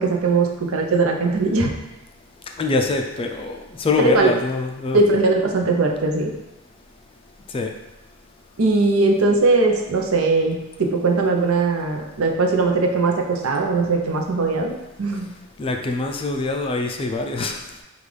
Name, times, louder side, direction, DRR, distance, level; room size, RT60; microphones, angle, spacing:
voice 1, 0.0-1.7 4.0-4.3 4.9-6.3 8.6-14.7 15.0-15.3, right 3 dB, 90° right, 2 dB, 0.6 m, -20 dB
voice 2, 2.6-5.1 7.5-7.7 15.6-17.7, left 3 dB, 25° left, 3 dB, 0.3 m, -24 dB
5.2 x 2.4 x 3.2 m, 0.97 s
head